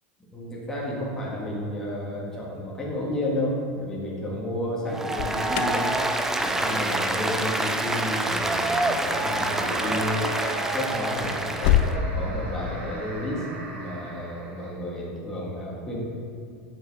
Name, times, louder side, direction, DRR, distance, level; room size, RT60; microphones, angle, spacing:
voice 1, 0.3-5.8 6.4-10.3 10.7-13.4 13.7-16.0, left 1 dB, 10° left, -5 dB, 1.6 m, -31 dB
Applause, 4.9-11.9, right 2 dB, 5° right, 0.4 m, -27 dB
Alarm, 5.0-12.0, left 12 dB, 60° left, 0.5 m, -31 dB
sound 1, 9.3-14.7, right 2 dB, 80° right, 1.8 m, -36 dB
7.8 x 5.2 x 4.7 m, 2.3 s
supercardioid pair, 150°, 6 cm